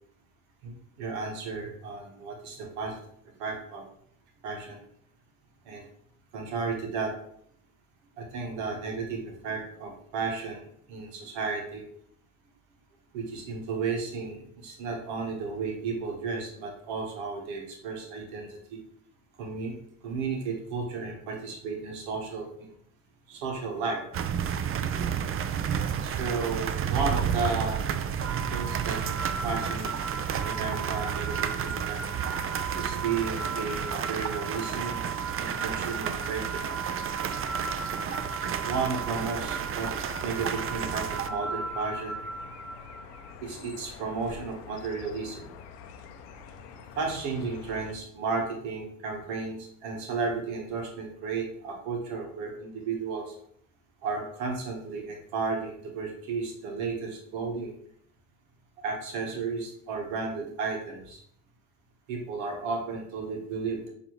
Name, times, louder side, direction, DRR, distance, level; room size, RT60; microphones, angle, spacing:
voice 1, 0.6-3.0 3.4-3.8 4.4-4.8 5.7-5.8 6.3-7.1 8.2-11.8 13.1-18.8 19.4-19.8 20.0-22.5 23.3-24.0 26.0-27.9 28.5-29.0 29.4-30.0 30.4-32.0 32.7-35.0 35.4-36.6 38.4-39.9 40.2-42.2 43.4-45.5 46.9-53.3 54.0-57.7 58.8-61.2 62.1-63.9, right 4 dB, 75° right, 2 dB, 1.1 m, -33 dB
sound 1, 24.1-41.3, right 8 dB, 30° right, 0.4 m, -31 dB
sound 2, 28.2-43.3, right 4 dB, 5° left, 1.7 m, -37 dB
sound 3, 39.1-47.9, left 6 dB, 90° left, 0.6 m, -47 dB
6.6 x 2.7 x 3.0 m, 0.67 s
hypercardioid pair, 70°, 45 cm